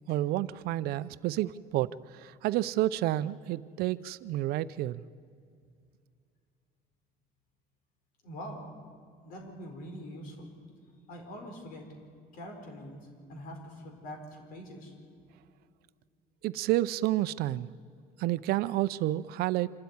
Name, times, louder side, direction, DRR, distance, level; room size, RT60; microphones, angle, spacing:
voice 1, 0.1-5.0 16.4-17.7 18.2-19.7, right 15 dB, 65° right, 16 dB, 0.6 m, -30 dB
voice 2, 8.2-8.7 9.2-10.5 11.1-11.9 12.3-14.9, equal, 55° left, 4 dB, 4.5 m, -44 dB
26.5 x 13.0 x 9.6 m, 2.2 s
cardioid pair, 180°, 17 cm